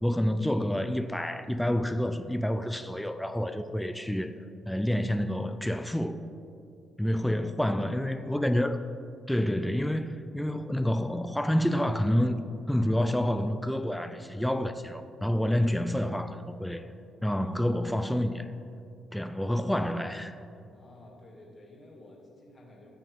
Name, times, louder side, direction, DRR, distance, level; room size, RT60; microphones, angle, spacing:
voice 1, 0.0-4.3 4.7-6.2 7.0-8.8 9.3-12.4 12.7-16.9 17.2-18.5 19.1-20.4, equal, 5° left, 0.4 m, -28 dB
voice 2, 20.7-22.9, left 1 dB, 35° left, 2.4 m, -52 dB
15.0 x 5.4 x 3.7 m
supercardioid pair, 75°, 0 cm